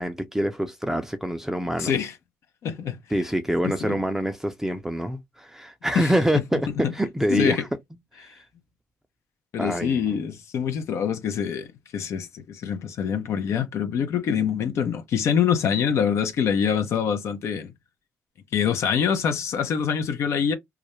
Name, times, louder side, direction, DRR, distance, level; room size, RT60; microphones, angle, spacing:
voice 1, 0.0-1.9 3.1-6.7 6.9-7.7 8.2-8.4 9.6-10.1, equal, 5° right, 0.5 m, -26 dB
voice 2, 1.8-2.1 2.6-3.0 3.6-4.0 6.0-6.1 6.8-6.9 7.3-7.6 9.5-17.7 18.5-20.5, left 7 dB, 65° left, 0.5 m, -25 dB
2.3 x 2.0 x 2.9 m
supercardioid pair, 65°, 5 cm